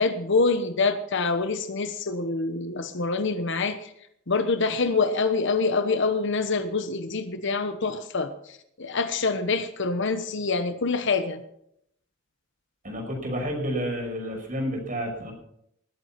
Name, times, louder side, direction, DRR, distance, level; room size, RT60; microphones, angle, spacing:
voice 1, 0.0-3.9 4.3-8.3 8.8-11.4, left 4 dB, 65° left, 10 dB, 1.1 m, -25 dB
voice 2, 12.8-15.3, equal, 40° right, 1 dB, 5.8 m, -30 dB
19.5 x 8.4 x 5.8 m, 0.73 s
head